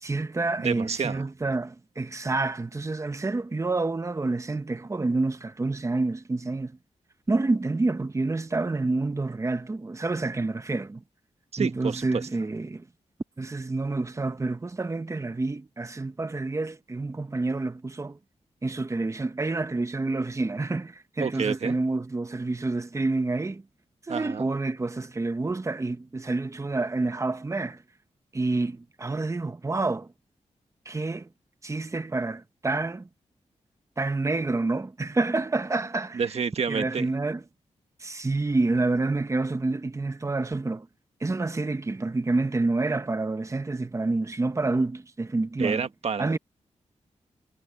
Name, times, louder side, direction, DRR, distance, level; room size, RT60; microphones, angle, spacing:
voice 1, 0.0-6.8 7.3-11.0 11.6-12.9 13.4-18.2 18.6-23.6 24.1-27.8 28.3-30.1 30.8-31.3 31.6-33.1 34.0-36.2 36.7-37.4 38.0-40.9 41.2-45.8 46.2-46.4, right 3 dB, 25° right, 1.1 m, -28 dB
voice 2, 0.6-1.2 11.5-12.2 21.2-21.7 24.1-24.5 36.1-37.0 45.6-46.4, right 6 dB, 60° right, 1.5 m, -29 dB
wide cardioid pair, 95°, 12 cm